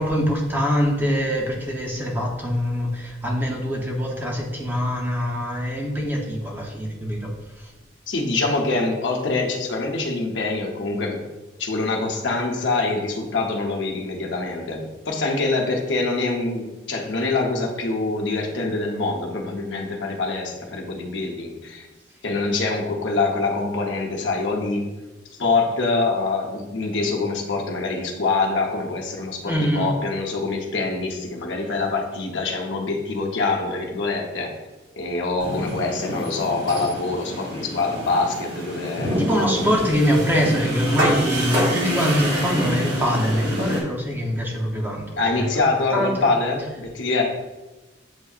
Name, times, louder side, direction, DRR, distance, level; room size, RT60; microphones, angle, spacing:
voice 1, 0.0-7.3 7.6-7.7 29.4-29.9 39.2-45.5 45.9-46.2, equal, 10° right, -2 dB, 0.6 m, -23 dB
voice 2, 8.1-11.2 11.6-21.9 22.2-24.9 25.4-34.6 35.0-39.3 45.1-47.2, left 3 dB, 75° left, 0 dB, 0.8 m, -25 dB
sound 1, 35.4-43.8, equal, 75° right, 1.4 m, -27 dB
7.9 x 2.7 x 2.4 m, 1.1 s
head